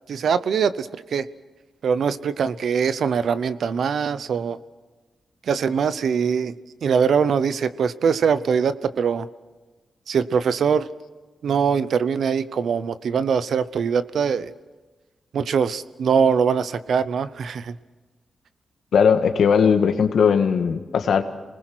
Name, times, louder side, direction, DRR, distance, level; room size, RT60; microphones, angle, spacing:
voice 1, 0.1-1.3 1.8-4.6 5.5-9.3 10.1-10.9 11.4-14.5 15.3-17.8, right 6 dB, 80° right, 14 dB, 0.8 m, -22 dB
voice 2, 18.9-21.2, left 6 dB, 80° left, 7 dB, 1.8 m, -18 dB
28.0 x 20.5 x 6.2 m, 1.3 s
cardioid pair, 80°, 0 cm